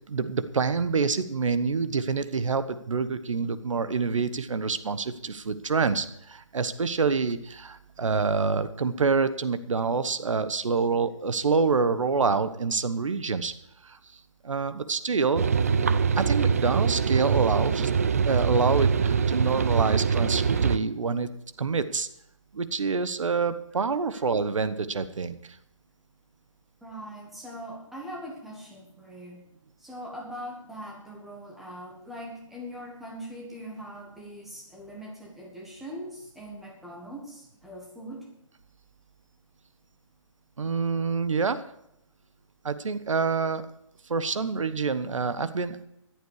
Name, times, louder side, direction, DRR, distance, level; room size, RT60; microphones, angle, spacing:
voice 1, 0.1-13.5 13.8-14.0 14.4-15.5 16.2-17.9 18.3-21.3 21.6-22.1 22.5-25.3 40.6-41.6 42.6-43.6 44.1-45.8, right 4 dB, 70° right, 13 dB, 1.2 m, -27 dB
sound 1, 15.4-20.8, right 6 dB, 30° right, 0.4 m, -23 dB
voice 2, 26.8-29.4 29.8-38.3, equal, ahead, -3 dB, 1.5 m, -41 dB
14.5 x 11.5 x 4.8 m, 0.79 s
hypercardioid pair, 170°, 17 cm